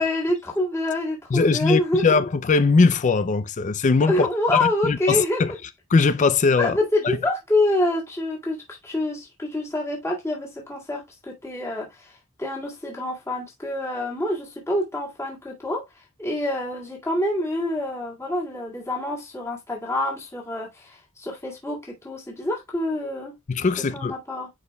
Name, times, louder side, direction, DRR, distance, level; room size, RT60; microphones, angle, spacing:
voice 1, 0.0-2.0 4.1-5.4 6.6-23.3 23.9-24.5, left 1 dB, 15° left, 1.9 m, -26 dB
voice 2, 1.3-4.3 4.6-5.5 5.9-6.8 7.0-7.2 23.5-24.1, left 4 dB, 35° left, 0.4 m, -20 dB
9.7 x 4.4 x 2.2 m
head